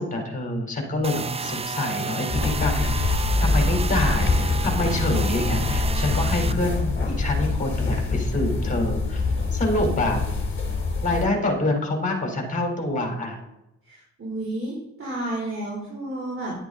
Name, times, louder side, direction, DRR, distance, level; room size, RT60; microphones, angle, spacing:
voice 1, 0.0-2.9 3.4-10.2 11.0-13.4, left 1 dB, 25° left, 2 dB, 3.9 m, -26 dB
sound 1, 1.0-6.5, right 4 dB, 20° right, 0.5 m, -31 dB
sound 2, 2.3-11.3, left 3 dB, 40° left, 3.6 m, -24 dB
voice 2, 13.8-16.5, right 1 dB, 45° right, -5 dB, 3.7 m, -31 dB
11.5 x 8.0 x 4.0 m, 0.89 s
cardioid pair, 90°, 30 cm